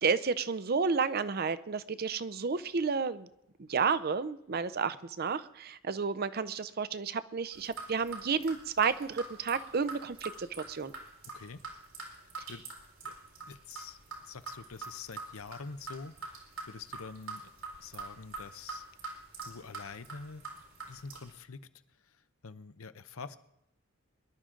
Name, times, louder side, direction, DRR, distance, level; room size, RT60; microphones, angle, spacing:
voice 1, 0.0-3.3 3.6-10.9, right 5 dB, 45° right, 15 dB, 0.6 m, -31 dB
sound 1, 7.5-21.3, right 3 dB, 90° right, 4.1 m, -45 dB
voice 2, 12.0-12.6 13.0-13.2 13.5-14.0 14.2-17.5 17.8-18.9 19.4-21.6 22.0-23.4, left 4 dB, 80° left, 12 dB, 0.8 m, -46 dB
23.5 x 11.5 x 3.8 m, 0.82 s
head